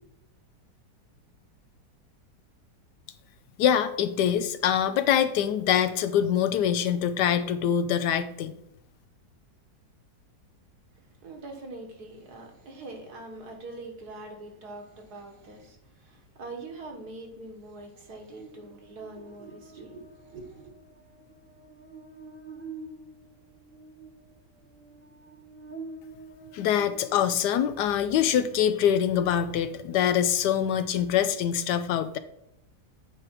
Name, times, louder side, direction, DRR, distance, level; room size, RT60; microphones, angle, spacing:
voice 1, 3.6-8.6 26.5-32.2, left 9 dB, 75° left, 1.1 m, -24 dB
voice 2, 10.9-20.7, right 2 dB, 65° right, 1.8 m, -43 dB
Buzz, 18.3-27.8, right 3 dB, 10° left, 0.9 m, -47 dB
8.6 x 4.8 x 4.5 m
omnidirectional pair, 1.9 m